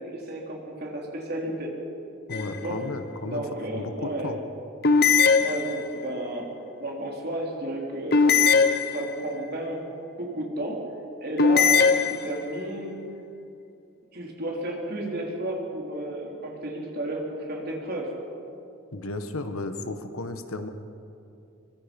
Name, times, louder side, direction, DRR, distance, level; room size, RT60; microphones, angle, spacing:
voice 1, 0.0-1.7 2.6-2.8 3.3-4.3 5.2-6.5 6.8-9.8 10.2-10.8 11.2-13.0 14.1-18.1, right 1 dB, 45° right, -1 dB, 3.7 m, -33 dB
voice 2, 2.3-3.4 3.7-4.4 18.9-20.7, left 2 dB, 90° left, 8 dB, 1.5 m, -34 dB
sound 1, 2.3-2.9 4.8-6.1 8.1-9.4 11.4-12.7, left 5 dB, 50° left, 0.8 m, -21 dB
24.5 x 22.5 x 5.4 m, 2.7 s
head